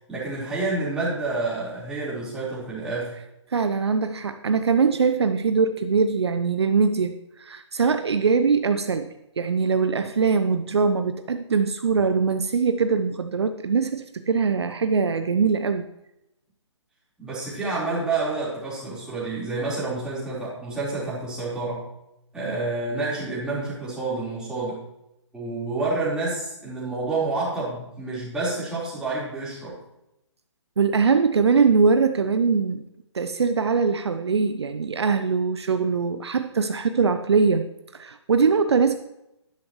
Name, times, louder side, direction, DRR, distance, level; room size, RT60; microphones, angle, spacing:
voice 1, 0.1-3.1 17.2-21.9 22.3-24.8 25.3-29.7, right 3 dB, 5° right, -8 dB, 4.1 m, -28 dB
voice 2, 3.5-9.1 9.4-15.9 30.8-32.8 33.1-37.7 37.9-39.0, right 5 dB, 60° right, 9 dB, 0.7 m, -22 dB
12.5 x 11.5 x 3.1 m, 0.86 s
figure-of-eight pair, 135°, 16 cm